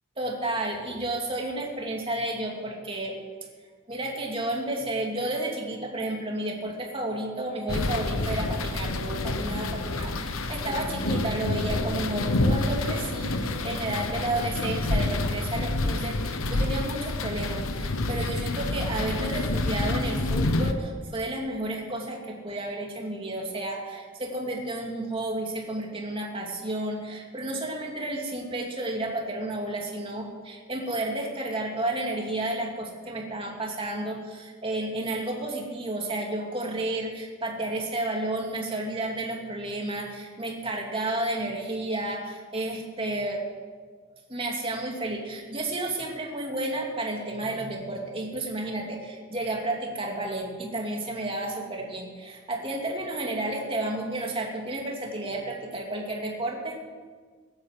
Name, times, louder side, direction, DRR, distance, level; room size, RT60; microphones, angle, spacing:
voice 1, 0.2-3.1 3.9-43.4 44.3-56.8, right 1 dB, 25° right, 0 dB, 2.6 m, -32 dB
sound 1, 7.7-20.7, left 2 dB, 80° left, 1.0 m, -28 dB
17.0 x 9.8 x 7.5 m, 1.5 s
head